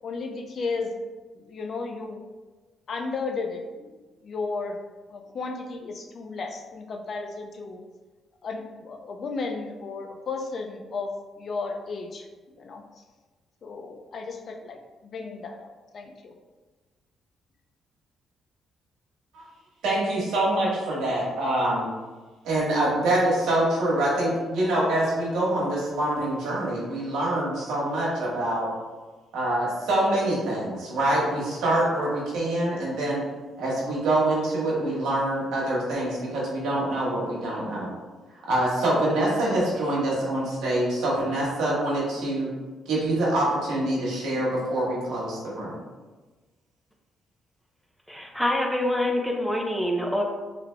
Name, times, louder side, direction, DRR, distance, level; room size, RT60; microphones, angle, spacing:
voice 1, 0.0-0.9 1.3-2.2 2.9-3.9 4.2-4.8 5.1-7.8 8.4-12.3 12.6-12.8 13.6-15.7 15.9-16.3, left 4 dB, 55° left, 4 dB, 0.4 m, -34 dB
voice 2, 19.8-21.9 22.4-28.7 29.3-33.2 33.6-37.9 38.3-42.5 42.9-45.7, right 1 dB, 85° right, -5 dB, 1.2 m, -25 dB
voice 3, 48.1-50.2, left 1 dB, 5° left, 0 dB, 0.6 m, -25 dB
3.6 x 3.3 x 2.2 m, 1.3 s
cardioid pair, 90°, 0 cm